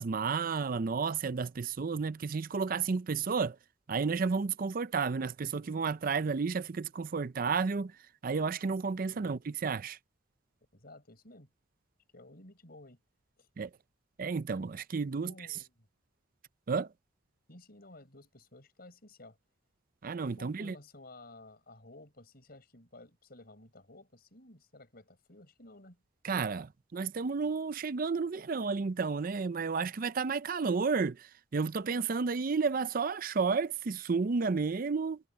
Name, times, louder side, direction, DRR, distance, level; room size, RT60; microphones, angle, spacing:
voice 1, 0.0-3.6 3.9-7.9 8.2-10.0 13.6-13.7 14.2-15.3 16.7-16.9 20.0-20.7 26.2-35.2, right 5 dB, 45° right, 0.5 m, -32 dB
voice 2, 10.7-11.5 12.1-13.0 13.4-13.5 15.2-15.9 17.5-19.4 20.3-26.0, left 2 dB, 50° left, 5.9 m, -54 dB
head